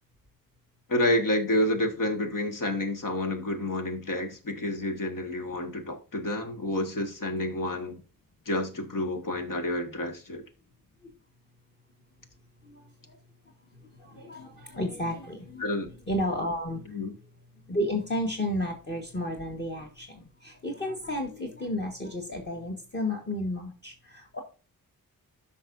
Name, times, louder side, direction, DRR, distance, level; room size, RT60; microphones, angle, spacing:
voice 1, 0.9-8.0 8.4-10.4 15.6-15.9 16.9-17.1, left 1 dB, 65° left, 1.7 m, -29 dB
voice 2, 14.0-15.6 16.1-16.8 17.7-24.4, left 1 dB, 30° left, 1.6 m, -32 dB
13.0 x 5.5 x 2.6 m
wide cardioid pair, 100°, 35 cm